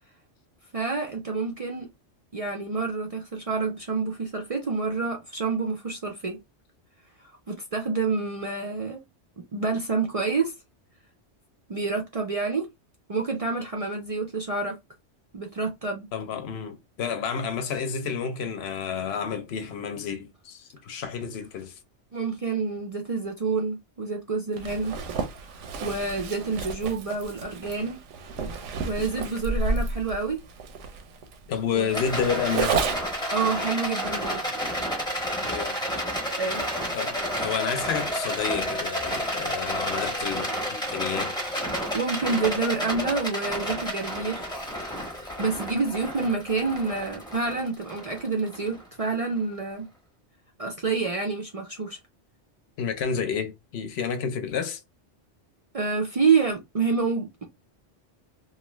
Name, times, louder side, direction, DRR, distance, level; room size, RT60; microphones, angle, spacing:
voice 1, 0.7-1.9 2.3-6.4 7.5-9.0 9.5-10.5 11.7-12.7 13.1-14.8 15.3-16.1 22.1-25.0 25.8-28.0 28.9-30.4 31.7-32.0 33.3-34.4 36.4-36.6 41.9-44.5 45.4-49.9 50.6-52.0 55.7-57.4, right 4 dB, 50° right, 0.4 m, -28 dB
voice 2, 16.1-21.8 31.5-32.8 35.4-35.8 36.9-41.4 52.8-54.8, left 7 dB, 65° left, 0.8 m, -30 dB
Zipper (clothing), 24.6-33.2, right 4 dB, 90° right, 0.9 m, -31 dB
Rattle, 31.9-49.3, equal, 5° left, 0.7 m, -31 dB
2.6 x 2.3 x 3.0 m
omnidirectional pair, 1.2 m